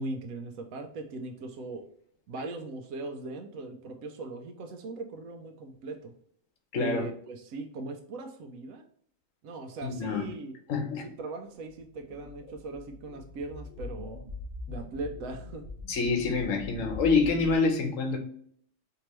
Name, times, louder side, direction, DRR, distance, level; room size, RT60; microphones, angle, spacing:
voice 1, 0.0-1.9 2.3-6.1 6.7-8.8 9.4-10.5 11.0-14.2 14.7-15.7, right 2 dB, 90° right, 1.0 m, -39 dB
voice 2, 6.7-7.1 9.8-10.3 10.7-11.0 15.9-18.2, left 4 dB, 75° left, 1.1 m, -26 dB
sound 1, 11.8-17.5, left 4 dB, 40° left, 1.2 m, -42 dB
4.5 x 2.9 x 3.0 m
omnidirectional pair, 1.4 m